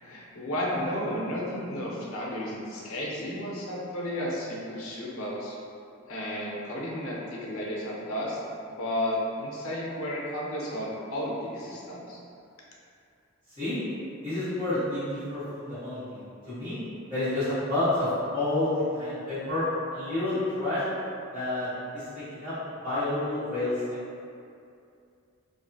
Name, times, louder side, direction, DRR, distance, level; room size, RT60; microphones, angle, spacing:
voice 1, 0.0-5.6 6.1-8.4 8.7-12.2, left 1 dB, 85° left, -4 dB, 0.5 m, -33 dB
voice 2, 14.2-16.2 16.5-16.8 17.1-18.1 18.3-19.6 19.9-20.8 21.3-22.0 22.3-22.5 22.8-23.7, left 2 dB, 40° right, -18 dB, 1.2 m, -29 dB
2.6 x 2.4 x 2.3 m, 2.5 s
head